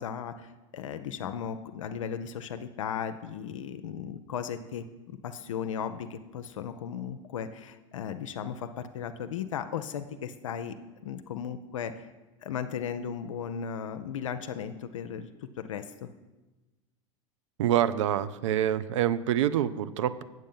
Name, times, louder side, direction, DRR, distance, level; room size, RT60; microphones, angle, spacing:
voice 1, 0.0-10.7 11.0-12.1 12.4-15.3 15.6-16.1, left 8 dB, 75° left, 8 dB, 0.5 m, -36 dB
voice 2, 17.6-20.2, right 11 dB, 70° right, 14 dB, 0.5 m, -26 dB
7.7 x 7.4 x 5.5 m, 1.1 s
hypercardioid pair, 90°, 17 cm